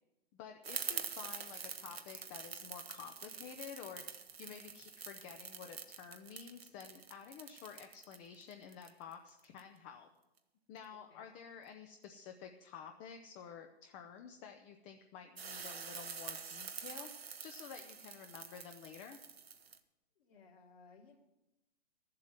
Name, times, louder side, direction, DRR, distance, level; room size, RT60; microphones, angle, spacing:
voice 1, 0.3-4.0 4.4-10.1 10.7-17.1 17.4-19.2, left 7 dB, 15° left, 5 dB, 0.5 m, -51 dB
sound 1, 0.6-9.6 15.4-19.8, right 6 dB, 75° right, 1.1 m, -46 dB
voice 2, 20.2-21.2, left 4 dB, 65° left, -5 dB, 2.3 m, -61 dB
13.0 x 7.6 x 7.5 m, 0.95 s
figure-of-eight pair, 120°, 31 cm